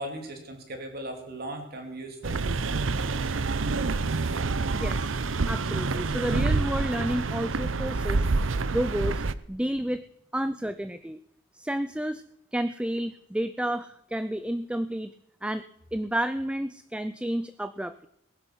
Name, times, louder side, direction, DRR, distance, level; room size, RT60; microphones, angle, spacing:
voice 1, 0.0-2.6, right 1 dB, 50° right, 4 dB, 3.2 m, -38 dB
sound 1, 2.2-9.3, right 3 dB, 75° right, 0.7 m, -27 dB
voice 2, 4.7-5.1 5.5-8.2 8.7-10.0 10.3-11.2 11.6-12.2 12.5-15.1 15.4-15.6 15.9-18.1, right 1 dB, 5° right, 12 dB, 0.5 m, -30 dB
19.5 x 11.0 x 6.2 m, 0.76 s
head